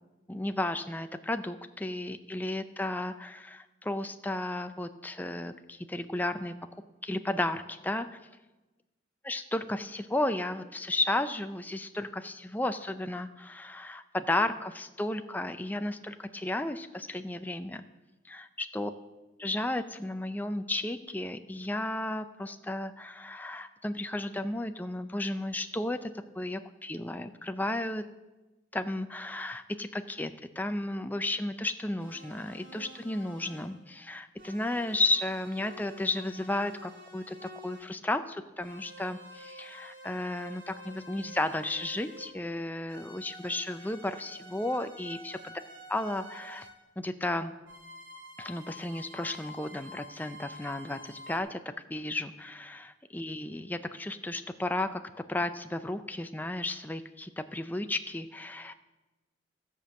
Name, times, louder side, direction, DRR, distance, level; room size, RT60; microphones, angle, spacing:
voice 1, 0.3-6.5 7.0-8.1 9.2-17.8 18.2-18.9 19.4-28.0 28.7-45.5 45.9-46.7 47.0-47.5 48.4-51.6 51.9-55.0 55.3-58.7, left 1 dB, 10° left, 8 dB, 0.4 m, -33 dB
sound 1, 32.0-33.8 34.4-37.9 38.6-42.5 42.9-46.8 47.6-51.4, left 1 dB, 80° right, 2.6 m, -49 dB
16.0 x 5.3 x 7.4 m, 1.1 s
head